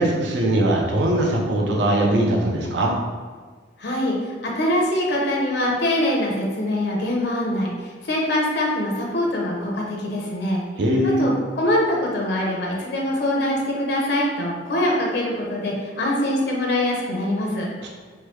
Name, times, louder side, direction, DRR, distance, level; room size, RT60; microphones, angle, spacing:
voice 1, 0.0-2.9 10.8-11.2 17.8-17.9, right 1 dB, 75° right, -1 dB, 0.6 m, -20 dB
voice 2, 3.8-10.6 11.0-17.7, left 1 dB, 65° left, -2 dB, 0.6 m, -23 dB
3.1 x 2.2 x 3.1 m, 1.5 s
head